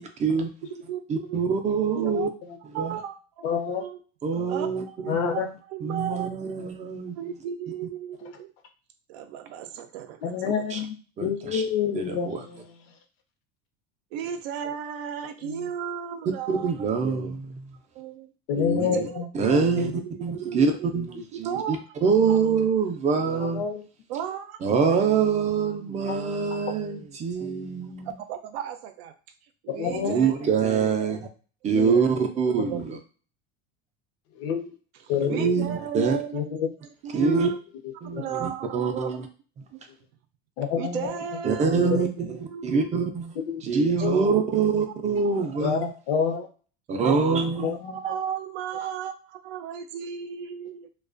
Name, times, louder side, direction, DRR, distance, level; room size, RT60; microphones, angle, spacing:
voice 1, 0.0-0.5 1.1-2.3 2.8-3.0 4.2-5.1 5.8-7.2 10.4-10.8 11.2-11.6 11.9-12.5 16.5-17.7 18.5-19.1 19.3-21.8 22.0-23.7 24.6-28.1 29.9-31.3 31.6-33.0 35.2-36.2 37.1-37.5 38.0-39.3 41.4-43.3 43.6-45.9 46.9-47.8, right 5 dB, 25° right, 0.4 m, -25 dB
voice 2, 0.6-1.4 1.9-2.3 2.7-4.0 4.5-6.3 7.2-8.5 9.1-10.8 14.1-16.9 17.9-18.3 18.8-19.2 19.5-20.6 21.3-21.9 22.8-22.9 24.1-24.7 28.0-29.1 29.6-30.4 31.7-32.3 32.7-32.8 34.9-36.5 37.0-37.6 38.1-39.1 39.7-39.8 40.8-41.9 42.2-43.1 43.6-44.8 45.2-45.4 46.3-46.4 47.0-47.1 47.6-50.9, right 8 dB, 80° right, 0.5 m, -35 dB
voice 3, 3.4-3.8 5.1-5.5 10.2-11.0 11.2-12.6 15.5-15.6 18.5-19.2 19.8-19.9 23.4-23.8 26.1-26.2 29.7-30.3 34.4-34.7 35.1-35.6 36.3-36.7 38.1-38.2 40.6-41.1 41.8-42.1 43.5-43.6 44.0-44.1 45.6-46.5 47.6-48.0, left 7 dB, 80° left, 0.7 m, -27 dB
2.3 x 2.2 x 2.4 m
supercardioid pair, 135°, 30 cm